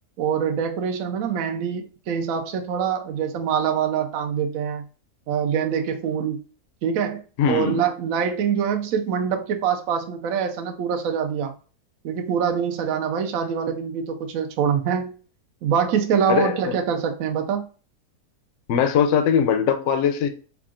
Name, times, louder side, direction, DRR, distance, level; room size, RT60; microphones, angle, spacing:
voice 1, 0.2-4.8 5.3-6.4 6.8-11.5 12.0-15.1 15.6-17.7, right 7 dB, 70° right, 0.8 m, -24 dB
voice 2, 7.4-7.8 16.3-16.7 18.7-20.3, left 7 dB, 65° left, 0.8 m, -21 dB
3.6 x 2.4 x 3.6 m
omnidirectional pair, 1.8 m